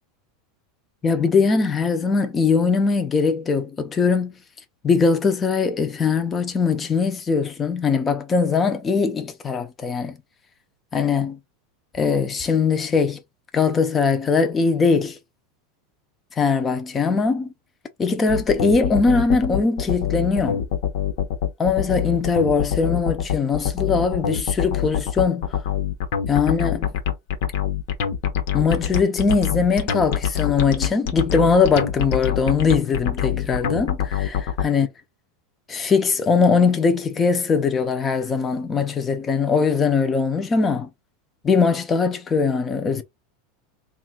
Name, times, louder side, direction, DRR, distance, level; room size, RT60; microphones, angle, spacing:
voice 1, 1.0-4.3 4.8-10.2 10.9-11.4 11.9-13.2 13.5-15.2 16.4-17.5 18.0-20.6 21.6-25.6 26.3-26.9 28.5-34.9 35.7-40.9 41.4-43.0, left 5 dB, 20° left, 0.7 m, -21 dB
sound 1, 18.3-34.6, left 9 dB, 65° left, 1.0 m, -24 dB
3.3 x 2.5 x 4.4 m
supercardioid pair, 150°, 0 cm